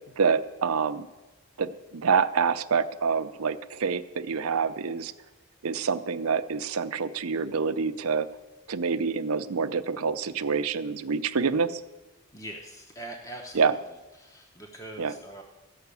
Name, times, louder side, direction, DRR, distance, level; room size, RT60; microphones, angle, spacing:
voice 1, 0.2-1.1 1.6-5.1 5.6-8.3 8.7-11.8 13.5-13.7 15.0-15.1, right 5 dB, 90° right, 12 dB, 0.6 m, -27 dB
voice 2, 12.3-13.8 14.2-15.4, right 1 dB, 15° left, 2 dB, 0.8 m, -42 dB
14.5 x 5.8 x 8.3 m, 1.1 s
head